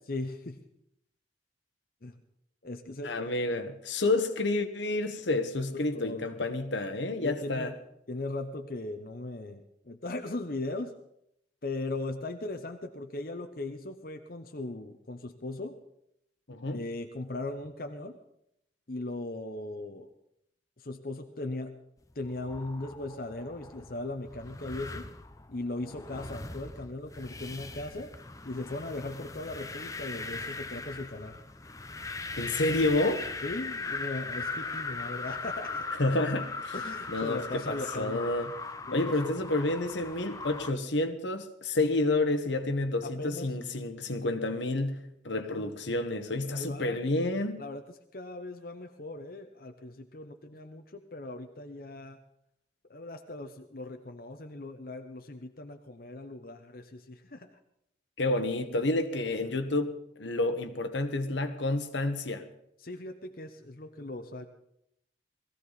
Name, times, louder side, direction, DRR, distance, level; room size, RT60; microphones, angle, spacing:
voice 1, 0.1-0.6 2.0-2.1 2.6-3.2 5.7-6.3 7.2-7.7 8.1-10.9 11.6-15.8 16.7-18.2 18.9-20.1 20.8-21.8 22.1-25.1 25.5-28.1 28.4-31.4 33.4-35.9 36.7-38.3 38.9-39.3 43.0-43.5 45.3-45.7 46.5-47.0 47.6-47.8 48.1-52.2 52.9-57.5 62.8-64.5, left 2 dB, 50° left, 0.9 m, -38 dB
voice 2, 3.0-7.7 16.5-16.8 32.4-33.2 36.0-36.7 37.1-38.5 38.9-47.6 58.2-62.4, left 2 dB, 80° left, 1.3 m, -29 dB
sound 1, 22.2-40.7, left 3 dB, 20° left, 0.6 m, -39 dB
20.0 x 15.0 x 4.1 m
head